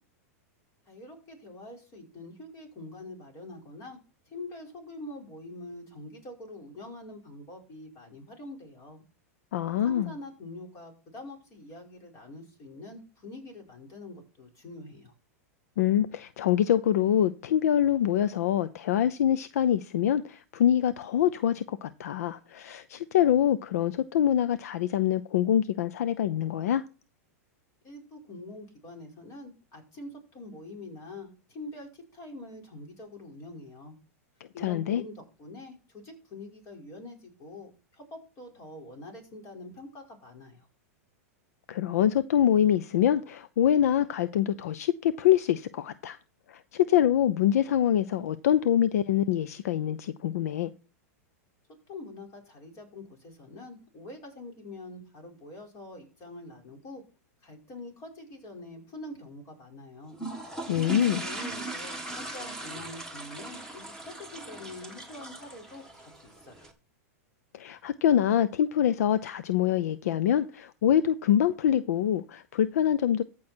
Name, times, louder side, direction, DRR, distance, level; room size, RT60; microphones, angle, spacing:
voice 1, 0.9-4.0 4.3-9.0 9.8-15.1 27.8-33.9 34.5-40.7 51.9-57.0 57.4-60.1 60.6-66.7, left 2 dB, 40° left, 5.4 m, -45 dB
voice 2, 9.5-10.1 15.8-26.8 34.6-35.0 41.7-46.2 46.5-50.7 60.7-61.2 67.5-73.2, left 10 dB, 75° left, 0.6 m, -25 dB
sound 1, 60.1-66.7, right 2 dB, 10° left, 2.1 m, -39 dB
14.5 x 6.3 x 4.5 m
hypercardioid pair, 125°, 8 cm